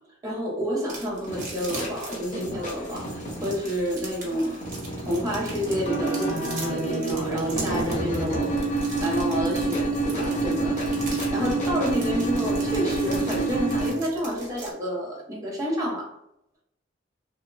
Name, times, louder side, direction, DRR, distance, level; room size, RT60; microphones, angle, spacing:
voice 1, 0.2-4.6 5.0-11.0 11.3-16.1, equal, 20° right, -3 dB, 0.6 m, -29 dB
sound 1, 0.9-14.7, right 3 dB, 45° right, 0.8 m, -40 dB
sound 2, 1.3-13.9, right 2 dB, 40° left, 0.7 m, -28 dB
2.9 x 2.0 x 2.4 m, 0.79 s
head